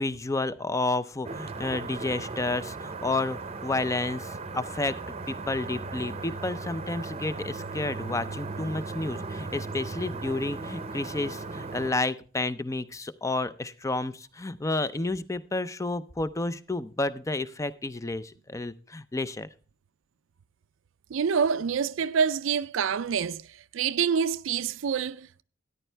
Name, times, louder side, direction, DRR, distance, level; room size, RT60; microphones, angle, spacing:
voice 1, 0.0-5.0 5.3-19.5, left 2 dB, 15° left, 0.5 m, -31 dB
sound 1, 1.2-11.9, right 3 dB, 30° right, 0.7 m, -37 dB
voice 2, 21.1-23.4 23.7-25.4, right 6 dB, 75° right, 0.4 m, -26 dB
13.5 x 10.0 x 3.3 m
head